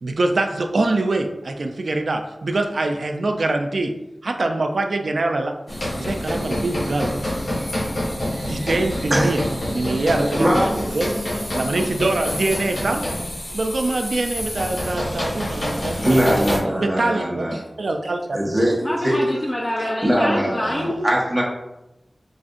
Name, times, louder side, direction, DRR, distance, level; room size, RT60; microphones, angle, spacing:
voice 1, 0.0-3.9 4.2-5.5 6.0-7.1 8.5-9.4 9.7-11.1 11.5-13.0 13.5-16.3 16.7-18.4, right 2 dB, 80° right, 5 dB, 0.4 m, -24 dB
sound 1, 5.7-16.6, left 1 dB, 80° left, 1.3 m, -27 dB
voice 2, 10.4-10.7 16.0-17.6 18.3-18.8 19.0-19.1 20.0-21.4, right 1 dB, 30° right, -4 dB, 1.1 m, -21 dB
voice 3, 18.6-21.0, left 1 dB, 35° left, -2 dB, 0.5 m, -26 dB
4.9 x 2.4 x 2.5 m, 0.94 s
wide cardioid pair, 65°, 0 cm